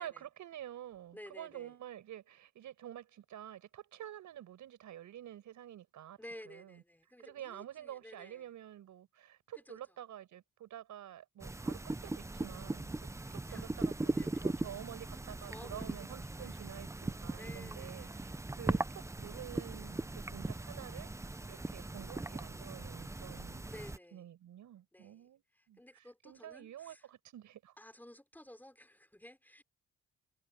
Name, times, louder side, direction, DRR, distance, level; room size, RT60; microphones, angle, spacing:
voice 1, 0.0-6.2 6.4-6.8 7.2-13.0 13.5-21.1 21.5-23.6 24.1-27.7, right 11 dB, 75° right, 6.4 m, -49 dB
voice 2, 1.1-1.8 6.2-8.5 9.5-9.8 13.2-14.6 15.4-16.8 17.3-18.8 23.7-24.3 24.9-27.1 27.8-29.6, left 1 dB, 5° left, 5.5 m, -54 dB
sound 1, 11.4-24.0, right 2 dB, 10° right, 0.7 m, -39 dB
cardioid pair, 90°, 30 cm